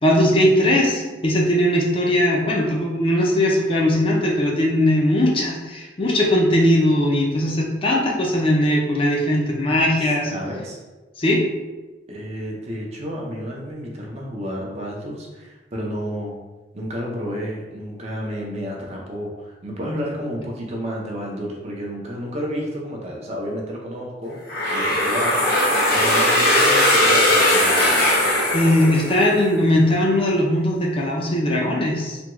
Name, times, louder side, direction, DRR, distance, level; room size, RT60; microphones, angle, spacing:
voice 1, 0.0-10.3 11.2-11.4 28.5-32.2, left 1 dB, 30° left, -2 dB, 0.5 m, -19 dB
voice 2, 10.0-10.8 12.1-16.3 16.7-24.4 24.7-25.4 25.9-27.8, equal, 35° right, -2 dB, 0.6 m, -31 dB
sound 1, 24.5-29.4, left 1 dB, 55° left, 0.8 m, -18 dB
3.4 x 2.2 x 3.0 m, 1.2 s
head